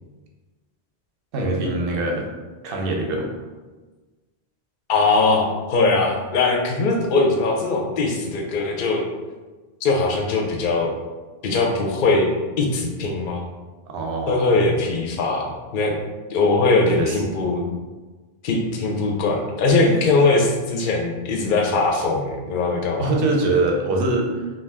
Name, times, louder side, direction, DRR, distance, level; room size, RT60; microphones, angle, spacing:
voice 1, 1.3-2.3 2.6-3.3 7.7-7.8 13.9-14.5 17.0-17.2 19.9-20.0 23.0-24.5, right 2 dB, 65° right, 1 dB, 0.7 m, -23 dB
voice 2, 4.9-9.0 9.8-10.9 11.4-12.3 12.6-13.4 14.3-15.9 16.3-17.7 18.4-23.1, left 3 dB, 60° left, 0 dB, 0.6 m, -21 dB
2.4 x 2.2 x 3.3 m, 1.3 s
omnidirectional pair, 1.1 m